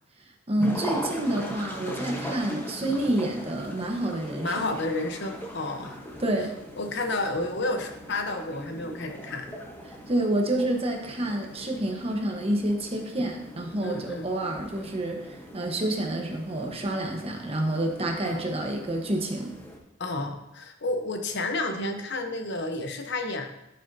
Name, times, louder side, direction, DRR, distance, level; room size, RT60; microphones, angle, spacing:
voice 1, 0.5-4.7 6.2-6.5 10.1-19.5, right 1 dB, 30° right, 2 dB, 1.1 m, -28 dB
sound 1, 0.6-19.8, equal, 10° left, 1.1 m, -40 dB
voice 2, 4.4-6.0 6.8-9.5 13.8-14.3 18.2-18.4 20.0-23.5, left 2 dB, 65° left, 6 dB, 0.9 m, -31 dB
12.5 x 6.4 x 2.7 m, 0.89 s
head